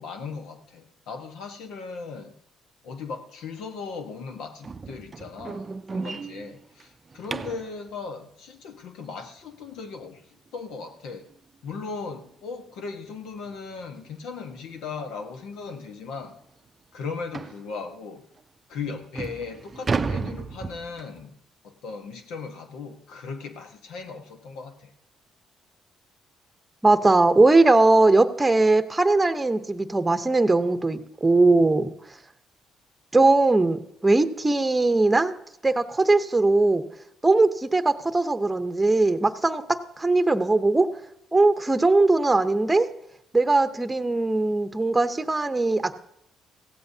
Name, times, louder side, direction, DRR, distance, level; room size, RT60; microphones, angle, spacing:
voice 1, 0.0-2.3 2.8-10.2 10.5-11.3 11.6-16.4 16.9-18.2 18.7-21.4 21.6-24.9, left 5 dB, 85° left, 6 dB, 1.3 m, -37 dB
sound 1, 4.6-7.7 10.5-10.6 11.1-11.3 11.7-11.8 12.3-12.4 13.4-13.6 14.0-14.1 14.8-14.9 15.2-15.3 15.8-15.9 17.3-17.6 18.4-18.5 19.0-21.2, right 4 dB, 35° right, 0.5 m, -33 dB
voice 2, 26.8-31.9 33.1-35.3 35.6-36.8 37.2-40.9 41.3-42.9 43.3-45.9, right 2 dB, 15° right, 8 dB, 0.9 m, -20 dB
16.0 x 14.5 x 2.8 m, 0.76 s
cardioid pair, 85°, 0 cm